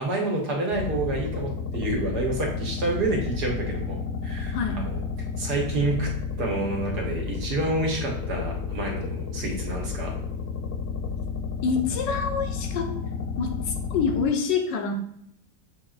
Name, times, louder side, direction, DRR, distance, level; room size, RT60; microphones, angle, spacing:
voice 1, 0.0-5.0 5.4-6.1 6.4-10.1, right 2 dB, 70° right, -1 dB, 1.7 m, -28 dB
sound 1, 0.7-14.3, left 5 dB, 65° left, 1.1 m, -31 dB
voice 2, 4.5-4.9 11.6-12.9 13.4-14.9, left 5 dB, 90° left, 5 dB, 1.4 m, -26 dB
6.9 x 2.9 x 2.4 m, 0.71 s
omnidirectional pair, 1.9 m